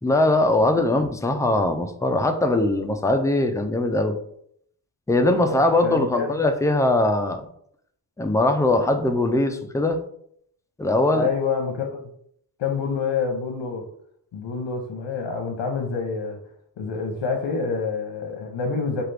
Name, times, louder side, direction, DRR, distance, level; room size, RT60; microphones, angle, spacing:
voice 1, 0.0-4.2 5.1-7.4 8.2-10.0 10.8-11.3, left 2 dB, 10° left, 7 dB, 0.3 m, -21 dB
voice 2, 5.4-6.3 11.1-12.1 12.6-13.8 14.3-16.4 16.8-19.0, left 5 dB, 75° left, 0 dB, 0.8 m, -27 dB
4.6 x 2.4 x 3.3 m, 0.68 s
wide cardioid pair, 95°, 44 cm